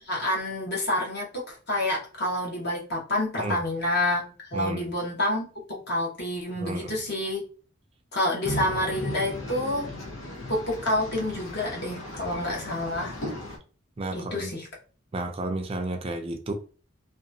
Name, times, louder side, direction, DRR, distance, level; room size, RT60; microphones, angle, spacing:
voice 1, 0.0-4.2 4.5-7.4 8.1-9.9 10.5-13.2 14.1-14.7, left 1 dB, 55° left, 1.1 m, -28 dB
voice 2, 4.5-4.9 6.5-7.0 14.0-14.5 15.1-16.5, right 2 dB, 30° right, 0.4 m, -32 dB
sound 1, 8.4-13.6, left 1 dB, 85° left, 0.8 m, -36 dB
2.8 x 2.3 x 2.6 m
head